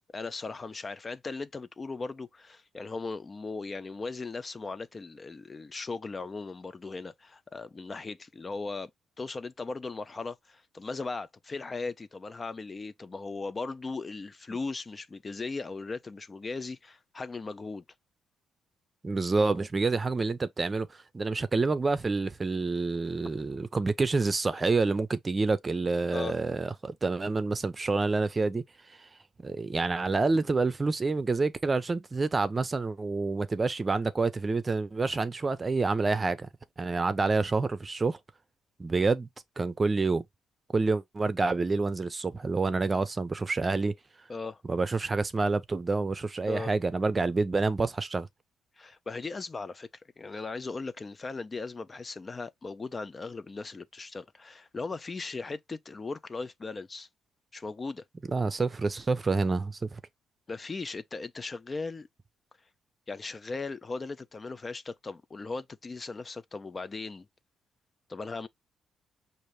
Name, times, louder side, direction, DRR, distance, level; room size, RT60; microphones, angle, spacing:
voice 1, 0.0-8.9 9.2-17.8 26.1-26.4 44.3-44.6 46.5-46.7 48.8-49.9 50.2-57.1 57.5-58.0 60.5-62.1 63.1-67.3 68.1-68.5, left 3 dB, 30° left, 0.4 m, -38 dB
voice 2, 19.0-28.6 29.0-29.1 29.4-36.5 36.8-38.2 38.8-39.3 39.6-40.2 40.7-43.9 44.7-48.3 58.3-60.0, right 3 dB, 30° right, 0.6 m, -28 dB
5.4 x 2.6 x 3.2 m
cardioid pair, 90°, 0 cm